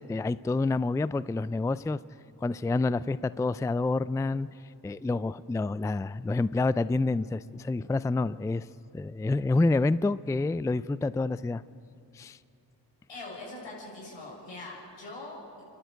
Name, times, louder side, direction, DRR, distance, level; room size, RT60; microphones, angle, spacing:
voice 1, 0.0-2.0 2.4-4.5 4.8-8.7 8.9-11.6 12.1-12.4, left 3 dB, 10° left, 17 dB, 0.4 m, -28 dB
voice 2, 13.1-15.6, left 2 dB, 80° left, -3 dB, 6.7 m, -42 dB
28.5 x 11.5 x 8.0 m, 2.5 s
supercardioid pair, 40°, 43 cm